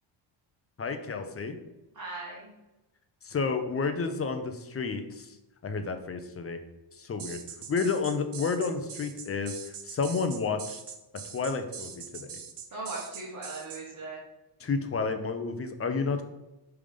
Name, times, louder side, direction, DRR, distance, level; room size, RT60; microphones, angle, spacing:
voice 1, 0.8-1.5 3.2-5.4 5.6-6.6 7.0-7.4 7.7-10.8 11.3-12.3 14.6-16.2, left 4 dB, 30° left, 7 dB, 0.6 m, -31 dB
voice 2, 1.9-2.5 12.7-14.2, right 2 dB, 40° right, -5 dB, 1.5 m, -38 dB
sound 1, 7.2-13.8, right 7 dB, 55° right, 0.8 m, -42 dB
5.2 x 3.5 x 5.1 m, 0.99 s
cardioid pair, 130°, 49 cm